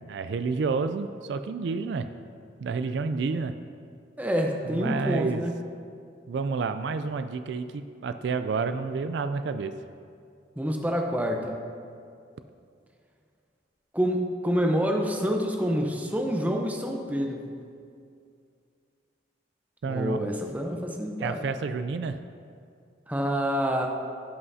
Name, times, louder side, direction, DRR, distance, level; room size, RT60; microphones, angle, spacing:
voice 1, 0.1-2.1 2.6-3.5 4.6-5.4 6.3-9.7 19.8-20.2 21.2-22.2, right 4 dB, 65° right, 10 dB, 0.3 m, -29 dB
voice 2, 4.2-5.5 10.6-11.5 13.9-17.5 19.9-21.4 23.1-23.9, equal, 10° right, 2 dB, 0.7 m, -27 dB
16.5 x 5.6 x 2.7 m, 2.4 s
head